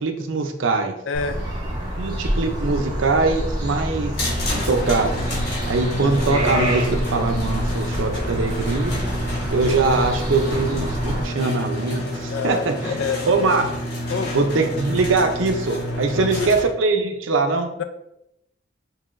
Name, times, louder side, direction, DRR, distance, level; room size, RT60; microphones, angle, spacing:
voice 1, 0.0-1.0 2.0-4.1 4.7-5.1 5.7-8.9 9.5-12.9 13.2-13.7 14.3-17.7, right 3 dB, 75° right, 5 dB, 0.6 m, -22 dB
voice 2, 1.1-1.4 12.3-13.3 14.1-14.4 16.1-16.5 17.8-17.9, left 5 dB, 75° left, 9 dB, 0.4 m, -27 dB
sound 1, 1.1-11.2, equal, 20° right, 0.8 m, -27 dB
sound 2, 4.1-16.6, left 1 dB, 55° left, 1.1 m, -29 dB
5.6 x 2.7 x 2.5 m, 0.85 s
head